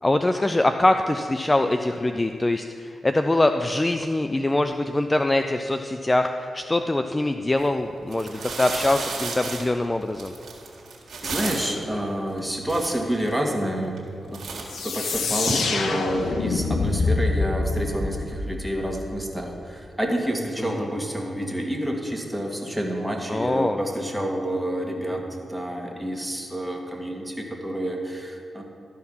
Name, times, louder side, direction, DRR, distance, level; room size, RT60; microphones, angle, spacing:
voice 1, 0.0-10.3 20.6-20.9 23.3-23.8, left 2 dB, 25° left, 7 dB, 0.4 m, -23 dB
sound 1, 7.5-7.6 8.1-11.8 12.4-12.5 12.6-13.4 13.8-14.1 14.3-15.5, right 4 dB, 70° right, 1.6 m, -33 dB
voice 2, 11.2-14.0 14.2-14.4 14.8-28.6, equal, 5° right, 0 dB, 1.8 m, -28 dB
sound 2, 14.7-19.3, left 3 dB, 75° left, 0.7 m, -26 dB
12.5 x 4.7 x 5.5 m, 2.6 s
supercardioid pair, 45°, 0 cm